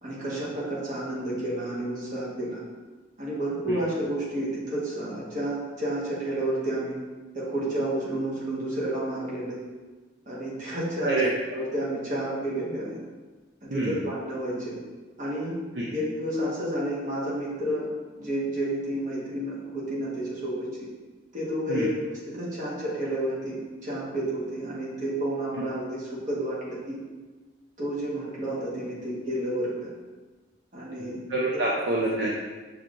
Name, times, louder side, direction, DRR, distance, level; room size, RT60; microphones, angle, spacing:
voice 1, 0.0-2.6 3.2-6.9 7.3-9.6 10.2-11.2 11.5-13.0 13.6-14.7 15.2-15.6 15.9-17.8 18.2-20.9 21.3-27.0 27.8-29.9 30.7-31.2 31.5-31.6, right 1 dB, 45° right, -6 dB, 1.3 m, -30 dB
voice 2, 31.0-32.3, right 2 dB, 60° right, -5 dB, 0.5 m, -27 dB
5.9 x 3.3 x 2.5 m, 1.3 s
head